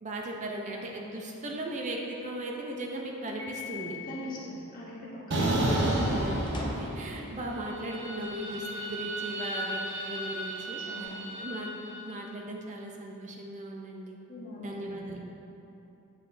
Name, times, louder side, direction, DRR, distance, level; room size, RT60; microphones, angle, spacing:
voice 1, 0.0-4.0 6.1-6.4 6.7-9.8 10.1-14.2 14.6-15.2, right 1 dB, 35° right, 0 dB, 0.5 m, -38 dB
Piano, 3.4-4.5, left 9 dB, 85° right, 0.9 m, -42 dB
voice 2, 4.1-5.4 5.9-6.4 10.8-11.2 14.3-15.2, left 1 dB, 40° left, -6 dB, 1.1 m, -41 dB
sound 1, 5.3-7.3 7.6-11.9, right 1 dB, 55° right, 0.8 m, -31 dB
sound 2, 6.5-7.1 8.2-8.7 9.4-9.5 10.7-11.5, left 1 dB, 20° left, 0.6 m, -42 dB
7.9 x 4.8 x 2.6 m, 3.0 s
head